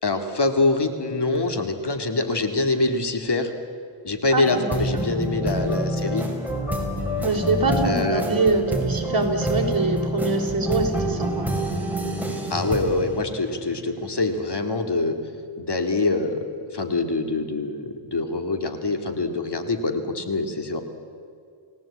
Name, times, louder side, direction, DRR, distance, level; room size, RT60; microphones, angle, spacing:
voice 1, 0.0-3.5 4.0-6.3 7.8-8.2 12.5-15.2 15.6-16.4 16.7-20.8, left 3 dB, 55° left, 6 dB, 2.4 m, -24 dB
voice 2, 4.3-4.7 5.5-5.7 7.2-11.5, right 3 dB, 45° right, 1 dB, 4.6 m, -24 dB
sound 1, 4.4-14.1, right 1 dB, 5° right, 5.6 m, -27 dB
30.0 x 18.0 x 8.7 m, 2.4 s
wide cardioid pair, 75°, 49 cm